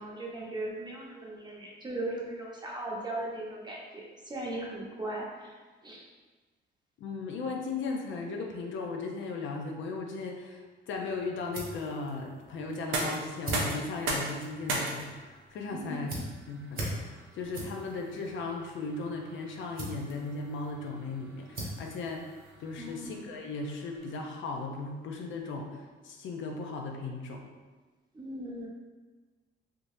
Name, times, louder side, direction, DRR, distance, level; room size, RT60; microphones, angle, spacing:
voice 1, 0.0-5.6 5.8-6.0 15.7-16.1 22.8-23.1 28.1-28.7, right 1 dB, 20° right, -3 dB, 0.8 m, -38 dB
voice 2, 7.0-16.1 16.5-22.3 22.6-27.5, left 3 dB, 75° left, 1 dB, 0.6 m, -37 dB
sound 1, 10.9-23.1, right 1 dB, 50° right, 1.1 m, -43 dB
sound 2, 12.7-24.5, right 2 dB, 80° right, 0.7 m, -40 dB
3.6 x 2.9 x 2.6 m, 1.3 s
cardioid pair, 90°, 20 cm